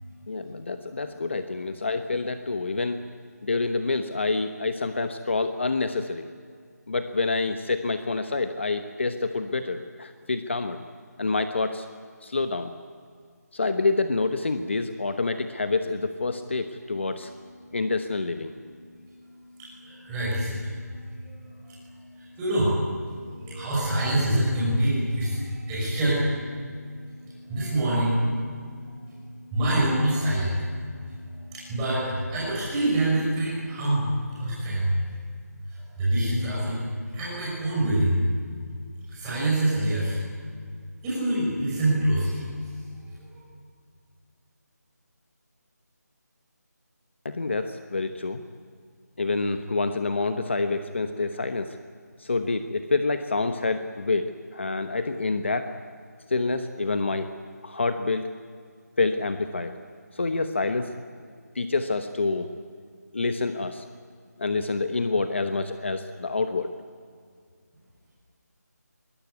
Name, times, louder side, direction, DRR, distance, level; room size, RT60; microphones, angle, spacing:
voice 1, 0.3-3.0 3.4-6.3 6.9-10.8 11.2-11.9 12.2-12.7 13.5-17.3 17.7-18.5 47.2-48.4 49.2-51.8 52.2-55.7 56.3-57.3 57.6-58.3 59.0-59.8 60.1-60.9 61.5-62.5 63.1-63.8 64.4-66.7, left 3 dB, 40° left, 8 dB, 1.0 m, -27 dB
voice 2, 19.8-20.6 22.4-22.7 23.4-26.3 27.5-28.2 29.5-30.6 31.5-34.1 34.4-34.9 36.0-36.8 37.1-38.2 39.1-40.2 41.0-42.4, right 1 dB, 10° right, -7 dB, 6.2 m, -25 dB
23.5 x 21.0 x 9.5 m, 2.1 s
figure-of-eight pair, 175°, 9 cm